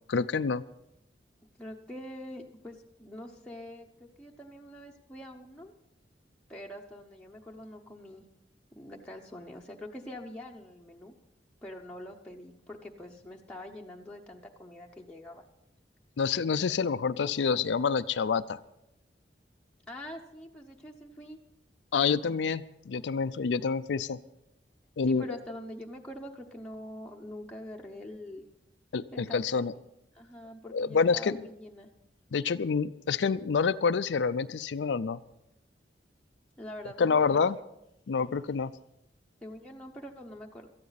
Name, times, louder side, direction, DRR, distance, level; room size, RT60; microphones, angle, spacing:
voice 1, 0.1-0.6 16.2-18.6 21.9-24.2 25.0-25.4 28.9-29.7 30.7-31.4 32.3-35.2 37.0-37.6 38.1-38.7, left 5 dB, 85° left, 11 dB, 0.5 m, -27 dB
voice 2, 1.6-5.7 6.5-8.2 8.7-11.1 11.6-15.4 19.9-21.4 25.0-28.5 29.1-29.8 30.1-31.9 36.6-37.5 39.4-40.7, left 1 dB, 5° left, -1 dB, 0.9 m, -45 dB
18.5 x 13.5 x 4.1 m, 0.84 s
head